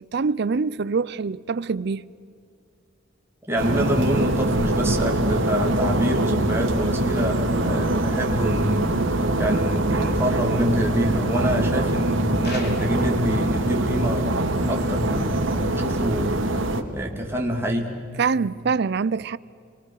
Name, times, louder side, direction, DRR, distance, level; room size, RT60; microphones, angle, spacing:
voice 1, 0.1-2.0 18.2-19.4, right 5 dB, 55° right, 0.5 m, -24 dB
voice 2, 3.5-8.9 9.4-14.3 14.7-16.4 16.9-17.9, equal, 10° right, 2.8 m, -26 dB
sound 1, 3.6-16.8, right 1 dB, 80° right, 2.1 m, -23 dB
sound 2, 12.4-13.2, left 3 dB, 55° left, 3.1 m, -39 dB
28.5 x 23.0 x 6.5 m
head